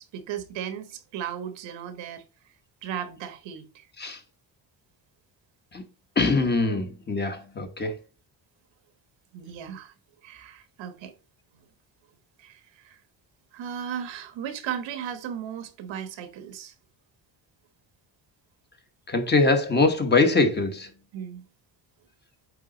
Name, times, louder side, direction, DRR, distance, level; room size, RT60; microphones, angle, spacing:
voice 1, 0.0-2.2 2.8-3.9 9.3-9.9 10.2-11.1 12.4-13.0 13.5-16.7 21.1-21.4, right 9 dB, 85° right, 1.3 m, -36 dB
voice 2, 6.2-8.0 19.1-20.9, left 3 dB, 25° left, 1.1 m, -23 dB
8.3 x 3.8 x 3.8 m
cardioid pair, 145°, 44 cm